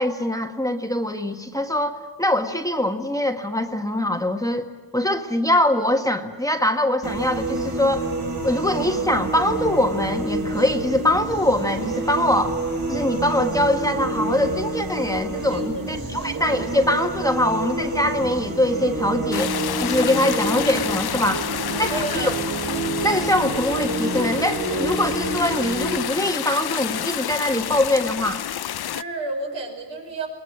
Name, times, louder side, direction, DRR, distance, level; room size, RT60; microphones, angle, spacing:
voice 1, 0.0-4.7 4.9-8.1 8.4-12.6 12.9-21.5 21.8-22.3 23.0-28.4, left 1 dB, 10° left, 4 dB, 1.5 m, -23 dB
sound 1, 7.0-26.0, right 2 dB, 55° right, 5.9 m, -28 dB
voice 2, 15.5-16.3 21.5-22.5 28.8-30.3, right 3 dB, 75° right, 1 dB, 6.1 m, -32 dB
sound 2, 19.3-29.0, left 11 dB, 60° left, 0.6 m, -29 dB
21.0 x 20.0 x 9.7 m, 1.4 s
cardioid pair, 80°, 43 cm